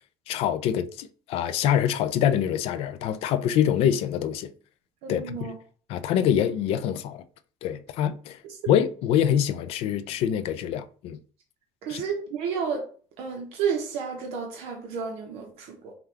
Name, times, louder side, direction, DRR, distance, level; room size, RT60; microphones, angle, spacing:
voice 1, 0.3-4.5 5.1-5.5 5.9-7.2 7.6-8.4 8.7-11.2 11.9-12.0, left 9 dB, 70° left, 0.4 m, -25 dB
voice 2, 5.0-5.5 8.4-8.6 11.8-12.8 13.2-15.9, right 6 dB, 70° right, 0.8 m, -31 dB
5.6 x 2.3 x 3.3 m
cardioid pair, 130°, 11 cm